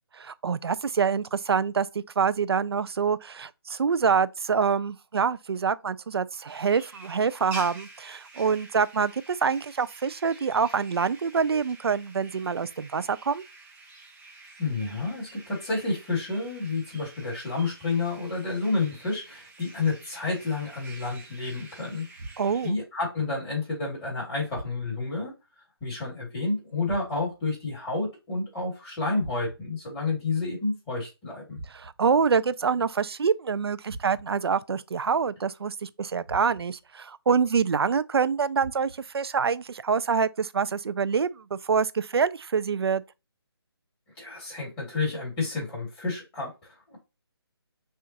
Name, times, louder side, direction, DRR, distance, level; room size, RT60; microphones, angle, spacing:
voice 1, 0.1-13.4 22.4-22.8 31.7-43.0, right 6 dB, 70° right, 0.4 m, -26 dB
sound 1, 6.5-22.7, right 3 dB, 10° right, 0.7 m, -48 dB
voice 2, 14.6-22.1 22.6-25.3 25.8-31.6 44.2-46.5 46.9-47.0, left 3 dB, 15° left, 2.2 m, -30 dB
sound 2, 22.2-22.8 24.5-25.1 26.8-27.5 29.2-29.8 31.5-32.2 33.9-34.5 36.2-36.9 38.6-39.2, right 2 dB, 45° right, 0.9 m, -44 dB
6.4 x 2.5 x 2.8 m
figure-of-eight pair, 150°, 14 cm